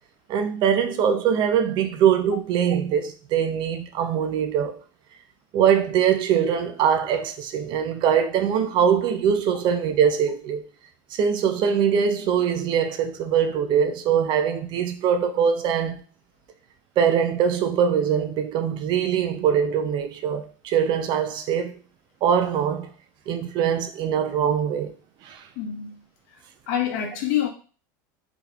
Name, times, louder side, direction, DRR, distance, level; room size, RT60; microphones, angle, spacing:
voice 1, 0.3-4.8 5.5-10.6 11.1-16.0 17.0-21.7 22.2-22.9 23.3-24.9 25.2-25.4, right 8 dB, 45° right, 0.5 m, -22 dB
voice 2, 25.6-26.0 26.7-27.5, left 10 dB, 65° left, 0.9 m, -26 dB
3.6 x 2.9 x 2.4 m
supercardioid pair, 120°, 11 cm